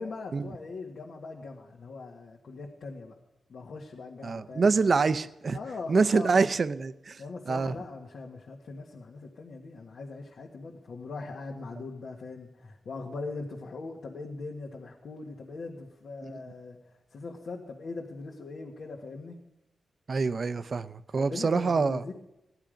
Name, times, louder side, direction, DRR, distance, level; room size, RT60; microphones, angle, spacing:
voice 1, 0.0-3.1 3.5-4.8 5.5-6.4 7.2-19.4 21.1-22.1, left 3 dB, 70° left, 1.6 m, -40 dB
voice 2, 4.2-5.6 5.9-7.2 7.5-7.7 16.2-16.3 20.1-22.0, right 4 dB, 50° right, 0.6 m, -26 dB
16.5 x 11.0 x 5.1 m
wide cardioid pair, 115°, 0 cm